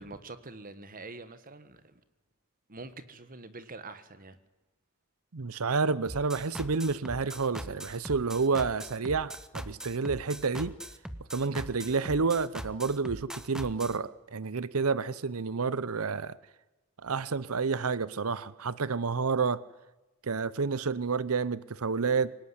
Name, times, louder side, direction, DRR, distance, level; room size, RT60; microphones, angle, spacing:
voice 1, 0.0-1.9 2.7-4.4, right 3 dB, 40° right, 1.5 m, -45 dB
voice 2, 5.3-10.8 11.3-16.4 17.0-19.6 20.2-22.4, right 4 dB, 85° right, 0.8 m, -29 dB
sound 1, 6.1-14.0, equal, 5° right, 1.2 m, -41 dB
25.5 x 18.0 x 9.8 m
head